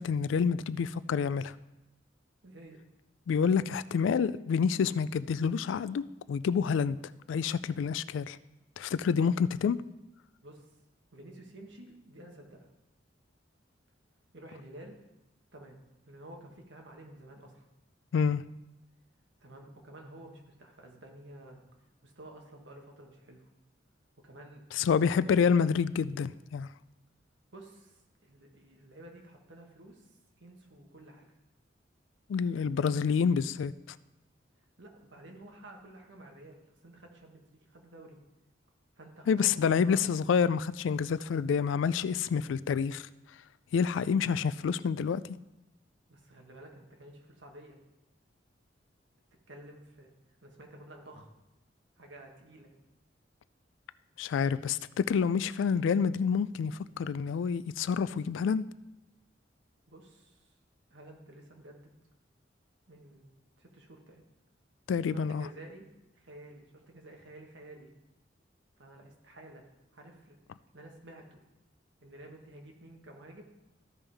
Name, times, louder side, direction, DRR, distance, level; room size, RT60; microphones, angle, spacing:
voice 1, 0.0-1.5 3.3-7.0 7.3-8.4 8.8-9.8 18.1-18.4 24.7-26.7 32.3-34.0 39.3-43.1 43.7-45.2 54.2-58.6 64.9-65.5, left 6 dB, 85° left, 17 dB, 0.3 m, -28 dB
voice 2, 2.4-2.8 10.4-10.7 11.1-12.7 14.3-15.0 15.5-15.8 16.1-17.6 19.4-21.6 22.0-23.5 24.2-25.5 27.5-31.3 34.8-38.2 39.0-40.1 46.1-47.8 49.5-50.1 50.4-51.3 52.0-52.7 59.9-60.5 60.9-61.9 62.9-63.3 63.6-64.2 65.1-65.9 66.1-67.9 68.8-69.7 69.9-70.4 70.7-71.4 72.0-73.4, right 1 dB, 75° right, 1 dB, 1.5 m, -51 dB
14.0 x 5.4 x 3.4 m, 0.94 s
head